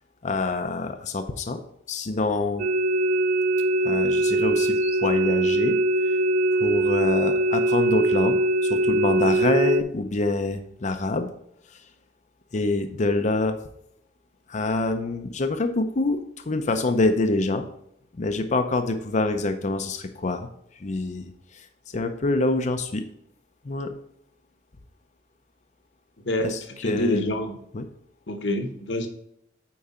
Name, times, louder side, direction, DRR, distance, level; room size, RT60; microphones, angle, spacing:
voice 1, 0.2-1.6 1.9-2.6 3.8-5.8 6.0-6.2 6.5-11.3 11.7-11.8 12.5-13.6 14.5-17.7 18.1-20.5 20.8-21.7 21.9-23.0 23.6-23.9 26.4-27.3 27.7-27.9, left 2 dB, 40° left, 6 dB, 0.6 m, -26 dB
sound 1, 2.6-9.8, right 1 dB, 45° right, 0.4 m, -22 dB
voice 2, 26.8-27.6 28.3-29.1, left 1 dB, 70° left, 5 dB, 1.1 m, -26 dB
8.7 x 4.7 x 4.2 m, 0.73 s
head